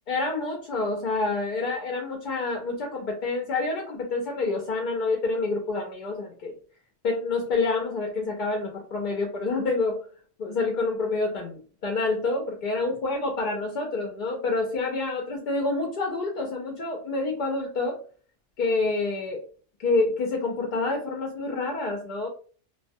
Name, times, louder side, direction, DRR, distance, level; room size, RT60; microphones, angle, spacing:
voice 1, 0.1-6.5 7.0-10.0 10.4-18.0 18.6-19.4 19.8-22.3, left 3 dB, 60° left, 0 dB, 0.5 m, -27 dB
2.3 x 2.1 x 2.6 m, 0.40 s
omnidirectional pair, 1.2 m